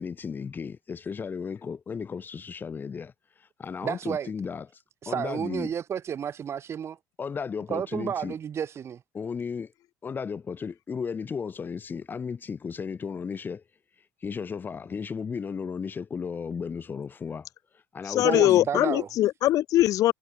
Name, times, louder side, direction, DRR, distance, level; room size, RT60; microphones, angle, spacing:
voice 1, 0.0-3.1 3.4-4.7 5.1-5.7 7.2-8.3 9.1-9.7 10.0-13.6 14.2-17.5 17.9-18.9, left 6 dB, 30° left, 1.4 m, -34 dB
voice 2, 3.8-4.3 5.0-7.0 7.7-9.0 18.2-19.1, right 8 dB, 40° right, 3.6 m, -31 dB
voice 3, 18.0-20.1, left 14 dB, 60° left, 1.4 m, -21 dB
supercardioid pair, 100°, 7 cm